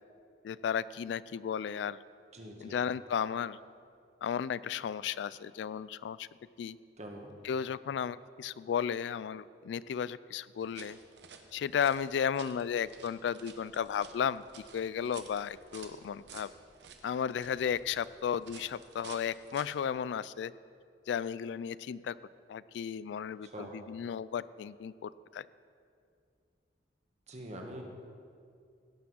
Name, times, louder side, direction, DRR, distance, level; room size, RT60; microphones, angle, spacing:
voice 1, 0.4-2.0 2.6-3.6 4.2-6.3 6.6-6.8 7.4-11.0 11.5-14.4 14.7-16.5 17.0-20.5 21.1-22.1 22.5-25.5, left 7 dB, 80° left, 18 dB, 0.3 m, -34 dB
voice 2, 2.3-2.8 7.0-7.3 23.4-23.7 27.3-27.8, right 1 dB, 40° right, 2 dB, 1.4 m, -44 dB
sound 1, 10.6-19.9, right 6 dB, 70° right, 1.0 m, -53 dB
16.5 x 5.9 x 6.3 m, 2.3 s
head